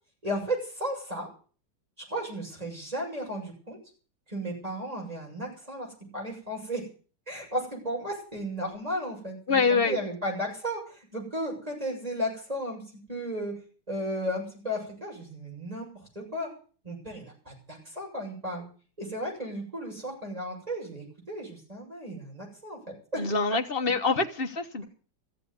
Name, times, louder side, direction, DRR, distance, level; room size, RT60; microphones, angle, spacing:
voice 1, 0.2-1.3 2.1-3.8 4.3-5.9 6.1-6.8 7.3-12.8 13.1-13.6 13.9-15.9 16.2-16.5 16.8-18.6 19.0-23.2, equal, 15° right, -1 dB, 7.2 m, -34 dB
voice 2, 9.5-10.0 23.2-24.8, left 4 dB, 35° left, 6 dB, 1.2 m, -25 dB
15.0 x 7.6 x 9.8 m, 0.41 s
omnidirectional pair, 2.2 m